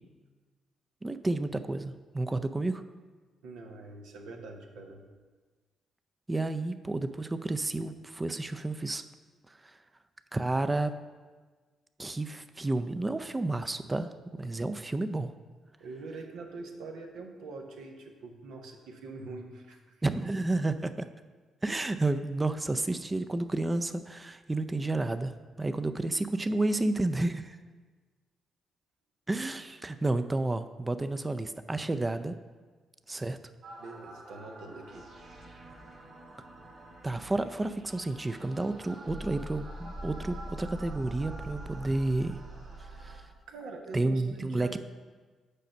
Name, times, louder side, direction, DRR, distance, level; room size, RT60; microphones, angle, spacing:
voice 1, 1.0-2.8 6.3-9.0 9.6-9.8 10.3-10.9 12.0-15.3 20.0-21.1 21.6-25.3 25.6-27.6 29.3-32.4 33.1-33.4 37.0-42.4 43.0-43.2 43.9-44.8, right 2 dB, 25° right, 10 dB, 0.5 m, -31 dB
voice 2, 3.4-5.0 15.8-20.0 33.8-35.1 35.6-35.7 43.5-44.8, right 3 dB, 75° right, 3 dB, 0.9 m, -44 dB
sound 1, 33.6-43.2, right 1 dB, 60° right, 1.8 m, -44 dB
6.6 x 5.0 x 6.4 m, 1.4 s
hypercardioid pair, 45°, 0 cm